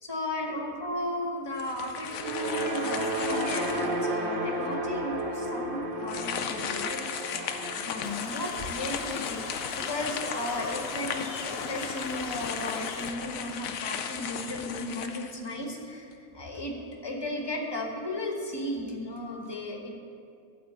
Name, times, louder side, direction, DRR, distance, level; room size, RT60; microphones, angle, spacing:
voice 1, 0.0-19.9, left 1 dB, 20° left, 0 dB, 1.0 m, -35 dB
sound 1, 1.5-4.1 4.7-4.8 6.0-15.8, left 7 dB, 75° left, 1.0 m, -36 dB
sound 2, 2.1-10.5, right 1 dB, 45° right, 1.1 m, -33 dB
sound 3, 8.0-13.1, left 4 dB, 55° left, 0.8 m, -39 dB
11.0 x 4.3 x 7.9 m, 2.5 s
omnidirectional pair, 1.5 m